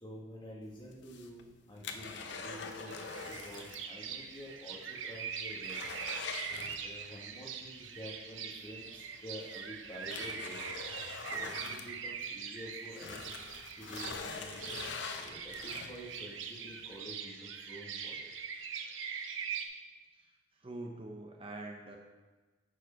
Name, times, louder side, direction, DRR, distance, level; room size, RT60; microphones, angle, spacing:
voice 1, 0.0-5.8 6.5-10.6 11.3-13.3 13.7-14.6 15.2-18.3, equal, 25° left, -4 dB, 1.7 m, -49 dB
sound 1, 0.9-3.9 4.2-4.3 4.8-4.9 5.2-7.2 8.7-8.8 9.4-12.5 12.9-16.2 16.7-16.8, left 4 dB, 65° left, 0.6 m, -43 dB
sound 2, 2.9-19.7, right 6 dB, 80° right, 0.7 m, -42 dB
voice 2, 20.1-22.0, right 2 dB, 30° right, 1 dB, 0.6 m, -45 dB
11.0 x 4.8 x 4.5 m, 1.3 s
head